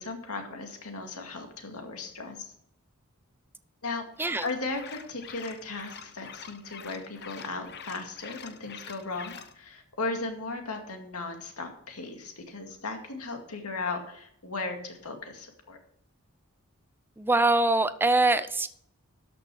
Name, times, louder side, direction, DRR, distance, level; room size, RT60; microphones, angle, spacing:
voice 1, 0.0-2.5 3.8-4.0 4.4-15.8, left 3 dB, 85° left, 4 dB, 2.2 m, -36 dB
sound 1, 4.2-9.5, left 7 dB, 50° left, 0.9 m, -46 dB
voice 2, 17.2-18.7, right 2 dB, 10° right, 13 dB, 0.5 m, -23 dB
13.0 x 6.4 x 4.9 m, 0.67 s
head